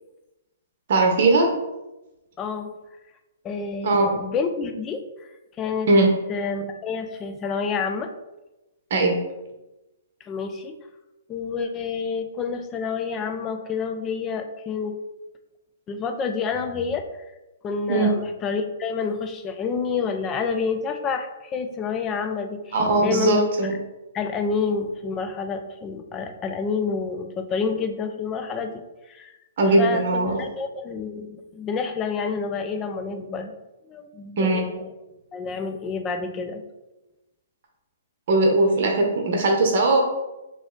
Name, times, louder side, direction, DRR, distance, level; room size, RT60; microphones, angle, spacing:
voice 1, 0.9-1.5 3.8-4.1 5.9-6.1 8.9-9.2 17.9-18.1 22.7-23.7 29.6-30.4 34.4-34.6 38.3-40.0, right 2 dB, 55° right, 1 dB, 0.7 m, -19 dB
voice 2, 2.4-2.7 3.4-5.0 5.6-5.9 6.3-8.1 10.3-10.7 11.3-14.9 15.9-17.0 17.6-22.8 23.0-23.5 24.1-28.7 29.1-29.3 29.8-33.5 33.9-34.9 35.3-36.6, left 5 dB, 25° left, 6 dB, 0.4 m, -28 dB
3.0 x 2.5 x 3.7 m, 1.0 s
hypercardioid pair, 130°, 0 cm